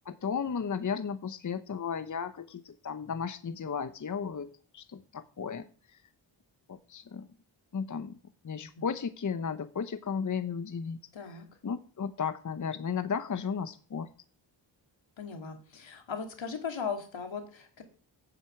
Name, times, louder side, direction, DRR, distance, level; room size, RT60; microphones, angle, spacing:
voice 1, 0.0-6.0 6.7-7.3 7.7-8.2 8.4-11.0 11.3-11.4 11.6-14.1, left 6 dB, 40° left, 11 dB, 0.8 m, -34 dB
voice 2, 11.1-11.5 15.2-17.8, left 6 dB, 80° left, 5 dB, 2.4 m, -38 dB
9.0 x 8.0 x 7.8 m, 0.43 s
wide cardioid pair, 100°, 45 cm